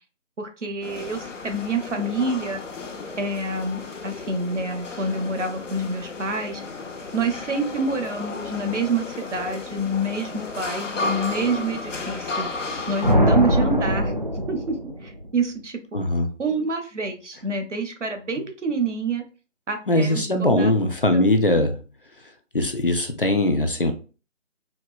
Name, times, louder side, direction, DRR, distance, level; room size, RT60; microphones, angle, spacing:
voice 1, 0.4-2.6 3.2-6.6 7.1-12.5 12.9-14.1 14.5-14.7 15.0-16.0 16.4-19.2 19.7-21.3, right 2 dB, 70° right, 6 dB, 0.9 m, -27 dB
sound 1, 0.8-13.1, left 3 dB, 75° left, 0.8 m, -33 dB
sound 2, 13.0-15.3, equal, 40° right, 0.4 m, -21 dB
voice 2, 15.9-16.3 19.9-21.8 22.5-23.9, left 1 dB, 45° left, 6 dB, 0.4 m, -21 dB
4.3 x 2.1 x 2.2 m, 0.35 s
figure-of-eight pair, 160°, 37 cm